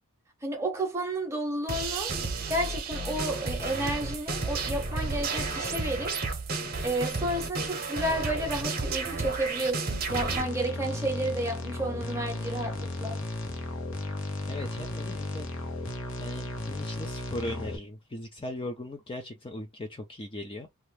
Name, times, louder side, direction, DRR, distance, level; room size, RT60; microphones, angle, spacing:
voice 1, 0.4-2.2 2.5-6.2 6.8-13.2, right 1 dB, 10° right, 0.9 m, -31 dB
sound 1, 1.7-10.4, right 3 dB, 45° right, 0.9 m, -32 dB
sound 2, 10.1-17.8, left 2 dB, 60° left, 0.9 m, -35 dB
voice 2, 14.5-15.5 16.2-20.7, left 1 dB, 25° left, 0.5 m, -38 dB
2.9 x 2.3 x 3.3 m
head